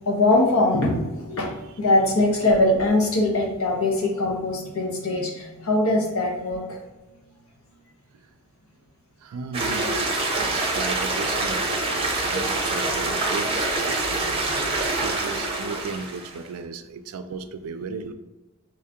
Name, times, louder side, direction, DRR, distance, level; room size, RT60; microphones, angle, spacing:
voice 1, 0.0-6.8 14.5-14.6, left 2 dB, 75° left, -1 dB, 0.9 m, -22 dB
voice 2, 9.2-10.0 10.3-18.1, right 4 dB, 70° right, 8 dB, 0.4 m, -36 dB
sound 1, 9.5-16.4, right 2 dB, 25° right, 0.6 m, -25 dB
3.1 x 2.8 x 3.5 m, 1.1 s
head